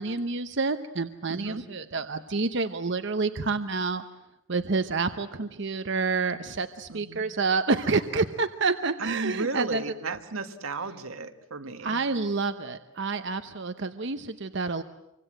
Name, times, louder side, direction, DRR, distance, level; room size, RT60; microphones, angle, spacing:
voice 1, 0.0-4.0 4.5-9.8 11.8-14.8, right 4 dB, 60° right, 9 dB, 0.9 m, -28 dB
voice 2, 1.3-1.7 6.9-7.3 9.0-12.0, right 3 dB, 85° right, 7 dB, 1.7 m, -34 dB
25.5 x 25.0 x 7.8 m, 0.86 s
head